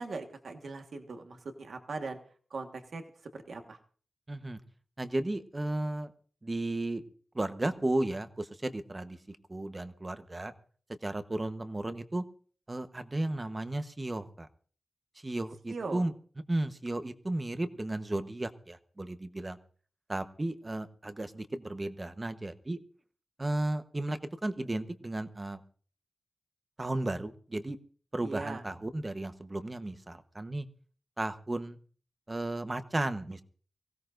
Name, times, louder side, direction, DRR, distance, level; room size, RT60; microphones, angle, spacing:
voice 1, 0.0-2.2 2.5-3.0 3.3-3.8 15.7-16.0 28.2-28.6, right 3 dB, 70° right, 5 dB, 1.5 m, -40 dB
voice 2, 4.3-4.6 5.0-6.1 6.4-7.0 7.3-9.2 9.5-10.5 11.0-12.2 12.7-14.5 15.2-16.1 16.5-19.6 20.1-22.8 23.4-25.6 26.8-27.8 28.1-30.7 31.2-31.8 32.3-33.4, right 1 dB, 25° right, 9 dB, 1.0 m, -34 dB
24.0 x 16.5 x 2.6 m, 0.43 s
wide cardioid pair, 95°, 0 cm